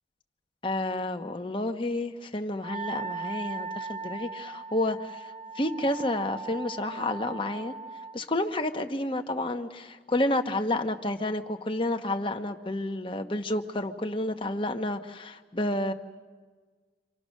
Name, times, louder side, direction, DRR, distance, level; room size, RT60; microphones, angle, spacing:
voice 1, 0.6-7.7 8.1-15.9, left 1 dB, 30° left, 5 dB, 1.1 m, -30 dB
Wind instrument woodwind instrument, 2.6-8.2, right 4 dB, 35° right, 0.7 m, -38 dB
29.0 x 25.5 x 6.5 m, 1.5 s
head